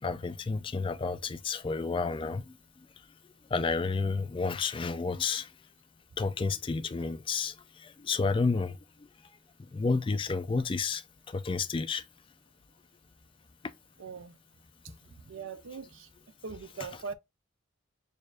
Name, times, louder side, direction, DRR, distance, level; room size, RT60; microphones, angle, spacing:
voice 1, 0.0-2.5 3.5-5.5 6.2-9.1 9.7-12.0 13.6-13.7, left 4 dB, 25° left, 0.3 m, -31 dB
voice 2, 14.0-14.3 15.3-16.1 16.4-17.1, right 5 dB, 75° right, 0.5 m, -40 dB
6.4 x 2.5 x 2.3 m
head